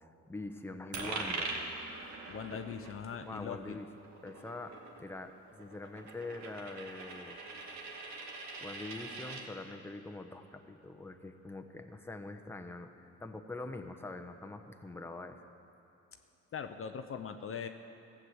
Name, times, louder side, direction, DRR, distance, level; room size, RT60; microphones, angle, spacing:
voice 1, 0.3-1.6 2.5-2.6 3.2-3.9 4.2-7.4 8.6-15.4, left 2 dB, 10° left, 5 dB, 0.9 m, -44 dB
Coin (dropping), 0.9-9.5, right 3 dB, 65° right, 1.9 m, -43 dB
voice 2, 2.3-3.8 16.5-17.7, left 7 dB, 45° left, 7 dB, 0.7 m, -41 dB
15.0 x 7.5 x 8.0 m, 2.8 s
cardioid pair, 90°, 30 cm